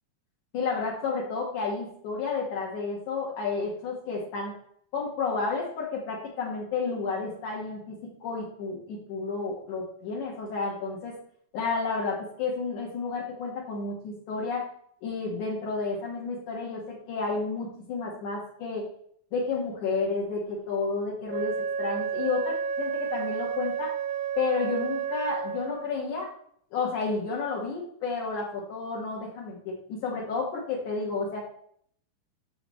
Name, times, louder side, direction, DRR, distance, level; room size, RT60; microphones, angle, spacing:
voice 1, 0.5-4.5 4.9-11.1 11.5-14.7 15.0-18.9 19.3-23.9 24.4-26.3 26.7-31.4, left 4 dB, 70° left, -3 dB, 3.3 m, -31 dB
Wind instrument woodwind instrument, 21.3-25.9, right 6 dB, 65° right, 1.2 m, -31 dB
14.0 x 6.1 x 3.2 m, 0.63 s
omnidirectional pair, 3.7 m